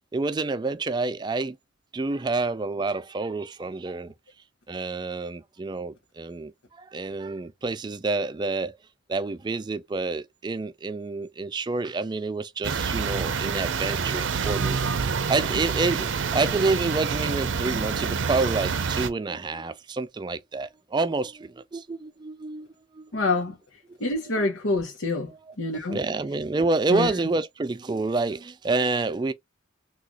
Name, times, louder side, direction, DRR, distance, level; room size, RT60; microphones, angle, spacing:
voice 1, 0.1-1.6 1.9-4.1 4.7-6.5 6.8-8.8 9.1-22.7 22.9-23.1 25.3-25.4 25.9-29.3, right 3 dB, 20° right, 0.3 m, -28 dB
sound 1, 12.6-19.1, right 5 dB, 75° right, 0.5 m, -27 dB
voice 2, 23.1-23.5 24.0-26.0 26.9-27.1, left 2 dB, 85° left, 0.9 m, -26 dB
3.8 x 2.4 x 3.0 m
head